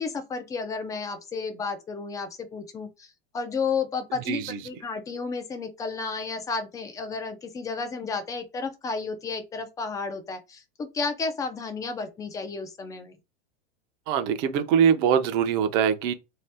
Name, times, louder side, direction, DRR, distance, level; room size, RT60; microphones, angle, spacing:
voice 1, 0.0-3.1 3.3-13.2, left 4 dB, 10° left, 0.3 m, -32 dB
voice 2, 4.3-4.6 14.1-16.1, right 8 dB, 40° right, 0.6 m, -23 dB
2.7 x 2.4 x 3.3 m
supercardioid pair, 140°, 33 cm